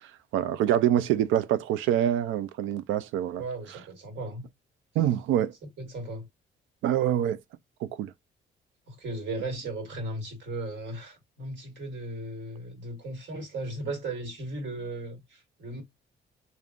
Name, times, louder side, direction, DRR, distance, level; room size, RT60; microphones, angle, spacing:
voice 1, 0.3-3.4 5.0-5.5 6.8-7.4 7.8-8.1, right 11 dB, 90° right, 0.4 m, -25 dB
voice 2, 3.4-4.5 5.8-6.3 8.9-15.8, right 2 dB, 65° right, 1.5 m, -36 dB
3.5 x 2.3 x 2.4 m
cardioid pair, 90°, 20 cm